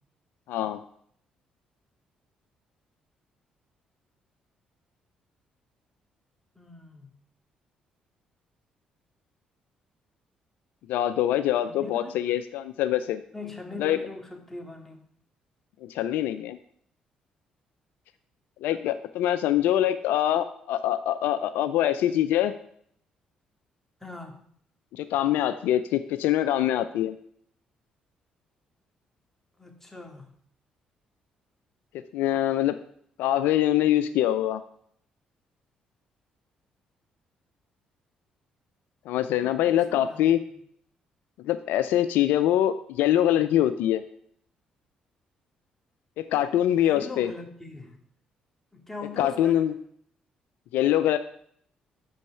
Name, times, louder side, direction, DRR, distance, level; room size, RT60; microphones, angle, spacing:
voice 1, 0.5-0.8 10.9-13.2 13.8-14.0 15.8-16.6 18.6-22.5 24.9-27.2 31.9-32.8 33.2-34.6 39.1-40.4 41.4-44.0 46.2-47.3 49.2-49.7 50.7-51.2, left 12 dB, 75° left, 11 dB, 0.4 m, -24 dB
voice 2, 6.6-7.1 11.6-12.1 13.3-15.0 24.0-24.4 29.6-30.3 39.4-40.3 46.7-48.0 48.7-49.6, left 3 dB, 10° left, 2 dB, 2.2 m, -41 dB
6.4 x 5.3 x 6.8 m, 0.65 s
hypercardioid pair, 50°, 3 cm